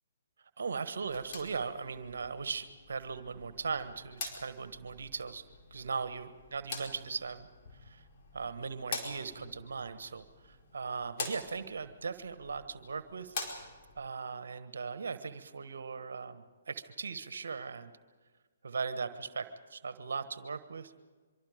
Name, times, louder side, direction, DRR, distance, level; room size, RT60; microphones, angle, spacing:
voice 1, 0.4-5.4 5.7-8.1 8.3-13.3 14.0-17.9 18.6-20.9, right 5 dB, 70° right, 11 dB, 1.3 m, -39 dB
sound 1, 1.0-14.0, left 3 dB, 45° left, 4.9 m, -46 dB
25.0 x 24.5 x 5.1 m, 1.4 s
figure-of-eight pair, 130°, 0 cm